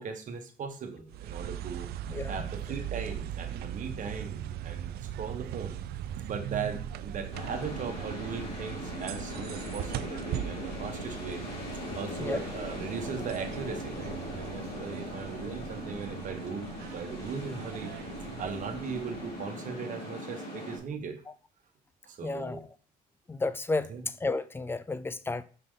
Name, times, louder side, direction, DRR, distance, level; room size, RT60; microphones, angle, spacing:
voice 1, 0.0-1.9 2.3-5.8 6.2-11.4 11.9-17.9 18.4-21.2 22.0-22.6 23.9-24.0, right 5 dB, 50° right, 1.3 m, -38 dB
sound 1, 1.1-19.5, right 10 dB, 70° right, 0.5 m, -40 dB
sound 2, 7.3-20.8, left 1 dB, 80° left, 3.0 m, -40 dB
voice 2, 22.2-22.6 23.3-25.4, left 3 dB, 15° left, 0.4 m, -32 dB
5.8 x 4.8 x 3.8 m
cardioid pair, 110°, 17 cm